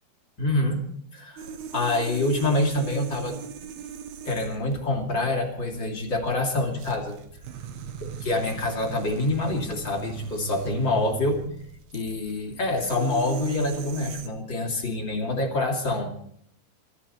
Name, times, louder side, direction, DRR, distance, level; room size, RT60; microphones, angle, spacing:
voice 1, 0.4-0.8 1.1-3.7 4.2-7.2 8.2-11.4 11.9-16.2, left 2 dB, 35° left, 1 dB, 2.9 m, -26 dB
sound 1, 1.4-14.3, right 7 dB, 80° right, 3.4 m, -39 dB
26.0 x 13.0 x 4.3 m, 0.67 s
omnidirectional pair, 4.5 m